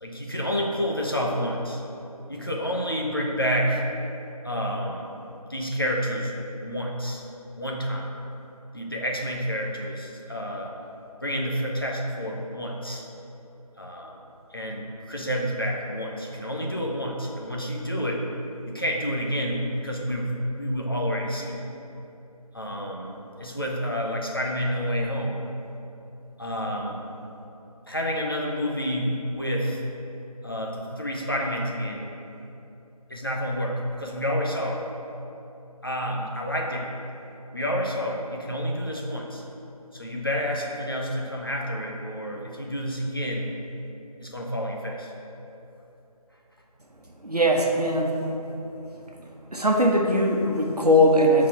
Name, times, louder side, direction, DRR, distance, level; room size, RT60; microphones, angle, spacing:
voice 1, 0.0-1.8 2.3-3.8 4.4-5.1 5.5-6.3 6.6-7.2 7.6-8.1 8.7-10.7 11.2-13.0 13.8-14.2 14.5-18.2 18.6-21.6 22.5-25.4 26.4-27.0 27.9-29.8 30.4-32.0 33.1-34.8 35.8-36.9 37.5-39.4 39.9-43.5 44.2-45.1, equal, 35° left, -1 dB, 0.8 m, -29 dB
voice 2, 47.2-48.2 49.5-51.5, equal, 80° right, 1 dB, 1.1 m, -20 dB
6.9 x 4.2 x 5.8 m, 2.9 s
figure-of-eight pair, 170°, 20 cm